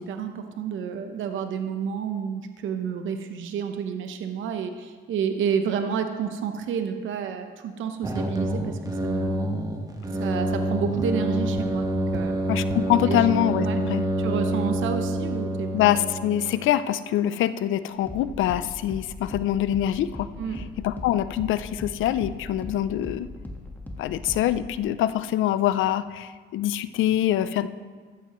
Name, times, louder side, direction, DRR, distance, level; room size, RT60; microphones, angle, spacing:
voice 1, 0.0-9.4 10.2-12.4 13.1-13.3 13.6-13.8 14.2-15.7 20.4-20.6, right 7 dB, 75° right, 7 dB, 0.9 m, -30 dB
sound 1, 8.0-16.6, right 1 dB, 20° right, 1.3 m, -27 dB
voice 2, 12.5-14.0 15.7-20.3 20.8-23.3 24.0-27.7, left 12 dB, 80° left, 14 dB, 0.5 m, -24 dB
sound 2, 16.3-24.7, left 2 dB, 10° left, 1.4 m, -40 dB
14.0 x 12.0 x 3.1 m, 1.6 s
cardioid pair, 90°, 20 cm